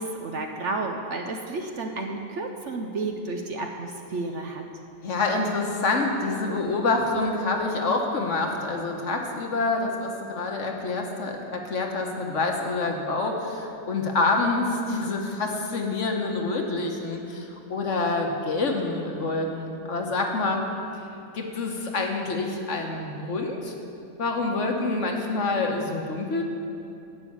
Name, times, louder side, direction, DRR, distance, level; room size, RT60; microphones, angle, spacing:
voice 1, 0.0-4.7, right 3 dB, 60° right, 4 dB, 0.9 m, -31 dB
voice 2, 5.0-20.6 21.3-23.7 24.2-26.4, left 3 dB, 55° left, 2 dB, 1.3 m, -27 dB
12.0 x 5.5 x 8.5 m, 2.7 s
omnidirectional pair, 1.7 m